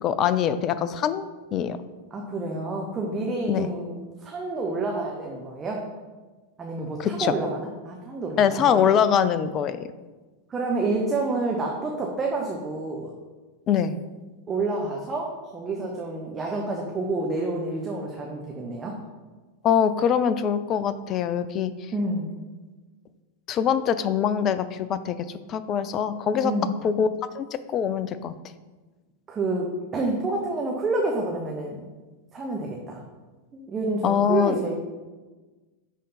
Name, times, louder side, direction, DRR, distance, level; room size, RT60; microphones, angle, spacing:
voice 1, 0.0-1.3 1.5-1.8 3.5-3.7 7.0-7.3 8.4-9.9 13.7-13.9 19.6-21.7 23.5-25.2 25.5-26.5 26.8-27.1 27.3-28.3 34.0-34.6, left 8 dB, 30° left, 13 dB, 0.4 m, -23 dB
voice 2, 2.1-5.8 6.6-8.8 10.5-13.1 14.5-19.0 21.9-22.3 26.4-26.7 29.3-31.8 32.3-33.0 33.5-34.7, right 2 dB, 20° right, -1 dB, 0.9 m, -28 dB
10.0 x 3.7 x 4.2 m, 1.3 s
figure-of-eight pair, 90°, 0 cm